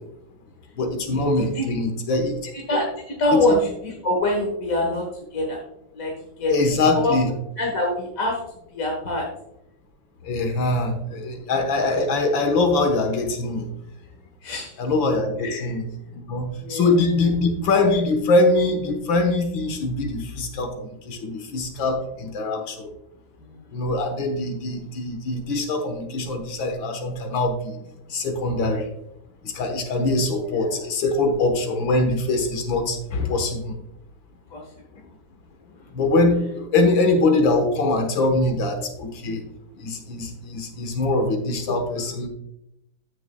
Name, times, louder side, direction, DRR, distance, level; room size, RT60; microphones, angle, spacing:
voice 1, 0.8-2.4 3.3-3.4 6.5-7.3 10.2-13.7 14.8-15.8 16.1-22.9 23.7-27.7 28.1-28.9 29.4-33.8 35.9-39.4 39.8-42.3, left 2 dB, 85° left, 5 dB, 2.1 m, -23 dB
voice 2, 1.4-1.7 2.5-5.6 5.9-6.5 6.9-7.1 7.6-8.4 8.7-9.3 14.4-14.8 15.4-15.8 16.5-16.8 23.4-23.7 34.5-34.6 35.7-35.9 41.7-41.8, left 1 dB, 50° left, -1 dB, 1.7 m, -25 dB
14.5 x 6.6 x 2.2 m, 0.81 s
omnidirectional pair, 2.0 m